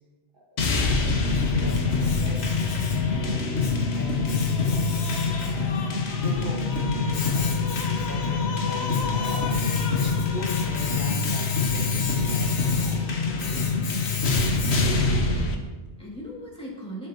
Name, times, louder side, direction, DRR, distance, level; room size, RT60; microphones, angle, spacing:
sound 1, 0.6-15.6, left 4 dB, 65° left, 1.3 m, -25 dB
voice 1, 0.7-2.6 3.0-4.9 5.5-13.1 13.3-13.9, equal, 50° right, -6 dB, 1.8 m, -39 dB
Domestic sounds home sounds, 1.3-15.2, left 5 dB, 80° left, 1.2 m, -32 dB
voice 2, 14.8-17.1, equal, 5° left, -5 dB, 2.2 m, -40 dB
15.5 x 5.9 x 2.9 m, 1.2 s
omnidirectional pair, 1.2 m